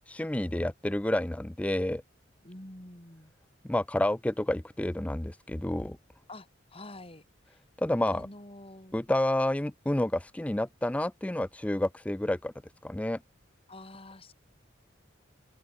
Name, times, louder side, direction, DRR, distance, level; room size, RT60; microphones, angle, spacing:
voice 1, 0.1-2.0 3.7-6.0 7.8-8.3 8.9-12.5 12.8-13.2, left 1 dB, 5° left, 0.4 m, -29 dB
voice 2, 2.4-3.3 6.3-7.6 8.0-9.0 13.7-14.3, left 2 dB, 30° left, 4.3 m, -47 dB
open air
head